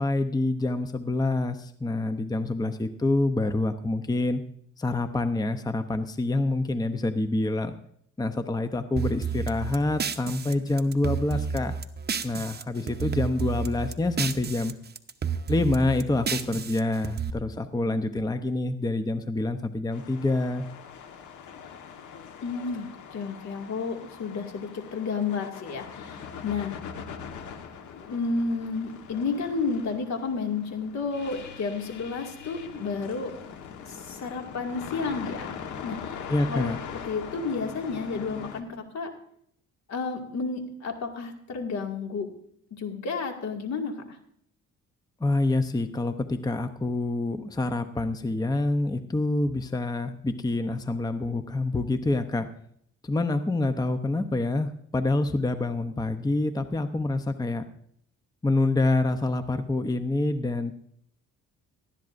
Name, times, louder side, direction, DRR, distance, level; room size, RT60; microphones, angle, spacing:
voice 1, 0.0-4.4 4.8-7.7 8.2-11.7 12.2-14.7 15.5-20.7 36.3-36.8 45.2-52.5 53.0-57.6 58.4-60.7, left 2 dB, 15° left, 9 dB, 0.7 m, -27 dB
sound 1, 9.0-12.6 12.9-14.7 15.0-17.3, right 6 dB, 35° right, 0.9 m, -31 dB
sound 2, 19.9-38.6, left 7 dB, 80° left, 1.4 m, -42 dB
voice 2, 22.4-26.8 27.9-33.3 33.9-35.5 35.8-36.2 36.5-36.7 37.1-39.1 39.9-42.3 42.8-44.2, left 4 dB, 65° left, 3 dB, 2.2 m, -31 dB
18.5 x 13.0 x 2.6 m, 0.68 s
cardioid pair, 90°, 30 cm